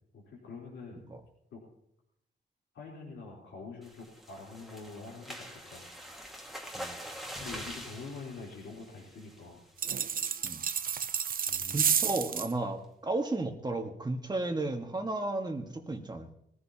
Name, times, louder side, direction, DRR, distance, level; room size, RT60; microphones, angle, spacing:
voice 1, 0.1-1.1 1.5-1.6 2.7-5.9 7.4-9.6 11.5-11.8, left 4 dB, 85° left, -5 dB, 3.9 m, -45 dB
sound 1, 3.8-9.6 10.0-10.3 10.6-10.7 11.1-11.4, equal, ahead, 1.9 m, -45 dB
sound 2, 9.8-12.5, right 7 dB, 50° right, 0.6 m, -30 dB
voice 2, 11.7-16.3, right 2 dB, 20° right, 3 dB, 1.6 m, -34 dB
21.5 x 15.0 x 2.9 m, 0.77 s
cardioid pair, 100°, 19 cm